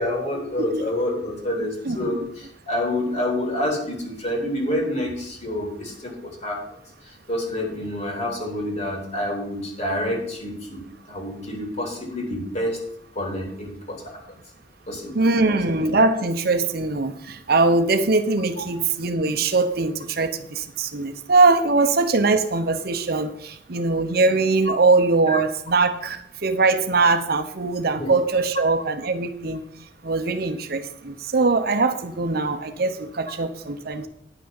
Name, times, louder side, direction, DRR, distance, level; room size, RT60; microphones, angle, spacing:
voice 1, 0.0-6.1 6.4-6.6 7.3-10.8 11.1-12.8 13.2-14.0 14.9-15.5 18.6-18.7 25.3-25.4 28.0-28.1, left 1 dB, 40° left, 0 dB, 3.5 m, -28 dB
voice 2, 15.1-29.6 30.0-34.1, right 3 dB, 60° right, 9 dB, 0.8 m, -21 dB
10.0 x 6.1 x 7.0 m, 0.71 s
head